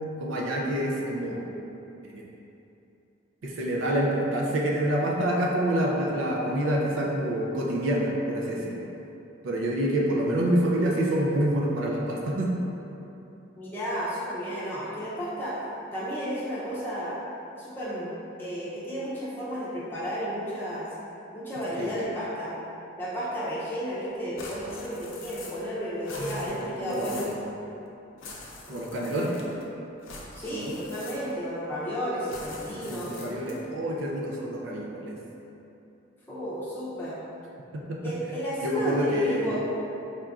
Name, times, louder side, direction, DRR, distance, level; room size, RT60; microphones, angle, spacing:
voice 1, 0.2-1.5 3.4-8.9 9.4-12.5 21.8-21.9 26.1-27.4 28.7-29.4 30.5-30.7 32.7-35.2 37.7-38.1 38.6-39.6, right 1 dB, 85° right, -2 dB, 0.5 m, -27 dB
voice 2, 13.6-15.6 15.9-17.1 17.5-20.9 21.3-22.5 23.0-27.3 30.3-33.2 36.3-37.2 38.0-39.6, equal, 10° left, -10 dB, 0.6 m, -32 dB
sound 1, 24.4-25.7 26.0-27.4 28.2-29.6 30.0-31.5 32.2-33.7, left 3 dB, 85° left, 0.6 m, -44 dB
4.3 x 2.5 x 3.4 m, 2.9 s
head